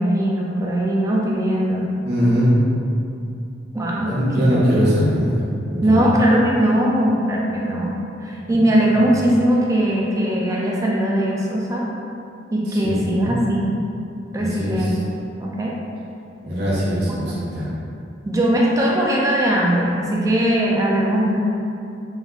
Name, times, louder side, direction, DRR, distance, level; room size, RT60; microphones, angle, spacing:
voice 1, 0.0-1.9 3.7-4.1 4.5-4.8 5.8-11.9 12.5-13.7 14.3-15.0 15.4-15.7 17.0-17.3 18.3-21.4, right 1 dB, 15° right, -3 dB, 0.3 m, -20 dB
voice 2, 2.0-2.6 4.0-6.1 12.8-13.3 14.4-14.8 16.4-17.7, equal, 60° right, -8 dB, 0.9 m, -21 dB
3.4 x 3.0 x 2.4 m, 2.6 s
head